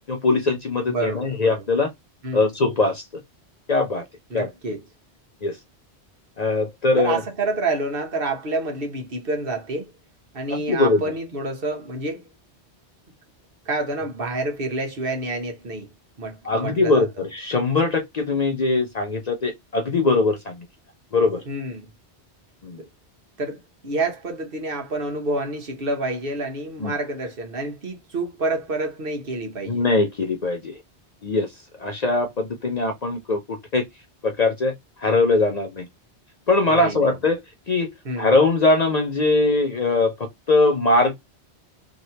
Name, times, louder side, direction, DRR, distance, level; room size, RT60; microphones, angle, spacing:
voice 1, 0.1-1.9 2.3-3.1 3.7-4.0 4.3-4.5 5.4-5.6 6.4-7.2 10.5-11.1 16.4-20.7 21.1-21.4 22.6-22.8 26.8-26.9 29.7-30.8 31.2-31.5 31.8-33.8 34.2-34.7 35.0-35.9 36.5-37.4 37.7-37.9 38.2-41.1, left 3 dB, 45° left, 0.6 m, -21 dB
voice 2, 0.9-1.5 2.2-2.5 4.3-4.8 6.9-9.9 10.3-12.3 13.6-15.9 16.2-17.0 21.5-21.9 22.8-22.9 23.4-29.8 36.7-37.1 38.0-38.3, right 2 dB, 55° right, 1.2 m, -28 dB
3.1 x 2.7 x 2.7 m
omnidirectional pair, 1.1 m